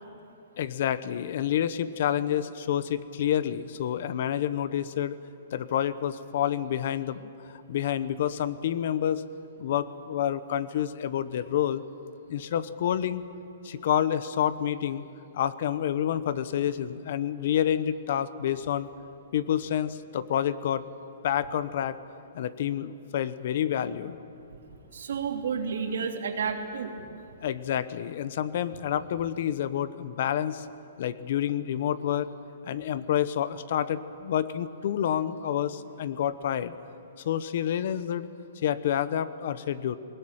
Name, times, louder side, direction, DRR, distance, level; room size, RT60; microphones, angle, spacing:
voice 1, 0.6-5.2 5.5-9.2 9.6-11.8 12.3-13.2 13.6-15.1 15.3-18.9 19.3-20.8 21.2-22.0 22.3-24.2 27.4-30.7 31.0-32.3 32.6-36.7 37.2-38.3 38.6-40.0, left 10 dB, 55° left, 15 dB, 0.9 m, -28 dB
voice 2, 24.9-26.9, right 6 dB, 80° right, 3 dB, 3.0 m, -31 dB
20.5 x 19.5 x 9.0 m, 2.7 s
hypercardioid pair, 160°, 0 cm